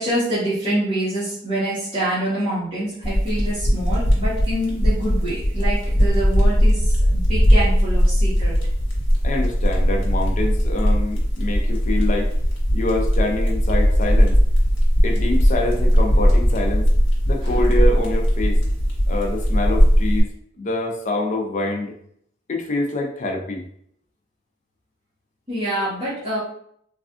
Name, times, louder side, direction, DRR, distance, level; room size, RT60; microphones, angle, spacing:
voice 1, 0.0-8.6 17.4-17.9 25.5-26.4, right 1 dB, 30° right, -13 dB, 1.0 m, -26 dB
sound 1, 3.0-20.2, equal, 80° left, 1.0 m, -18 dB
voice 2, 9.2-12.3 12.7-14.4 15.0-16.9 17.3-18.6 19.1-20.3 20.6-21.9 22.5-23.6, left 2 dB, 40° left, 2 dB, 0.4 m, -25 dB
3.3 x 2.3 x 2.4 m, 0.68 s
head